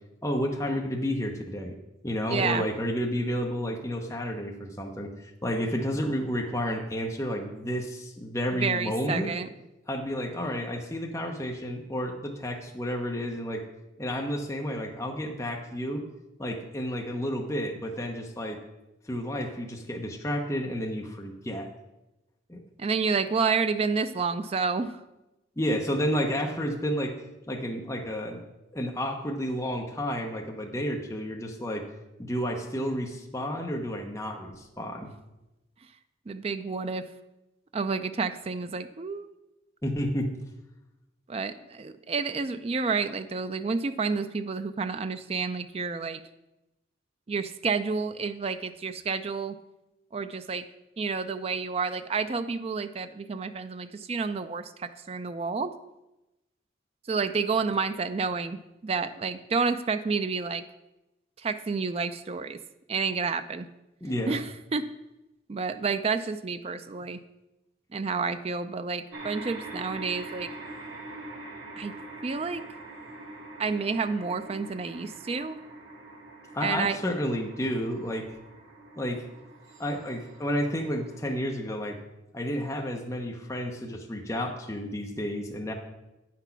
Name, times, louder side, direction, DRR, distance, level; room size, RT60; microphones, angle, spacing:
voice 1, 0.2-1.7 2.0-9.3 9.9-13.6 14.0-16.0 16.4-18.6 19.1-21.7 22.5-22.6 25.6-27.1 27.5-28.4 28.7-31.8 32.2-35.1 39.8-40.3 64.0-64.4 76.5-78.3 79.0-79.2 79.8-82.0 82.3-85.7, equal, 15° left, 1 dB, 0.8 m, -31 dB
voice 2, 2.3-2.7 8.5-9.5 22.8-25.0 36.3-37.1 37.7-39.3 41.3-46.2 47.3-49.6 50.1-50.6 51.0-55.7 57.1-60.6 61.4-62.6 62.9-63.7 64.3-64.9 65.5-67.2 67.9-70.5 71.8-72.0 72.2-72.6 73.6-75.6 76.6-77.0, right 4 dB, 30° right, 10 dB, 0.3 m, -30 dB
sound 1, 69.1-81.2, right 2 dB, 75° right, 1.6 m, -44 dB
9.0 x 6.0 x 5.8 m, 0.98 s
head